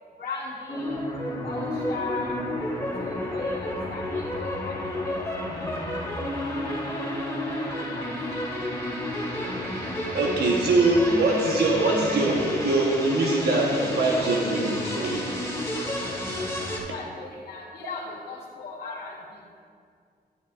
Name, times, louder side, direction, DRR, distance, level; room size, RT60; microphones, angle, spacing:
voice 1, 0.2-1.0 1.4-2.4 3.0-5.2 6.4-8.1 16.7-19.4, left 4 dB, 85° left, -7 dB, 1.4 m, -38 dB
sound 1, 0.7-16.8, left 1 dB, 15° left, 2.3 m, -30 dB
voice 2, 10.1-15.2, right 2 dB, 80° right, -2 dB, 1.1 m, -23 dB
12.0 x 9.7 x 2.4 m, 2.2 s
cardioid pair, 75°, 17 cm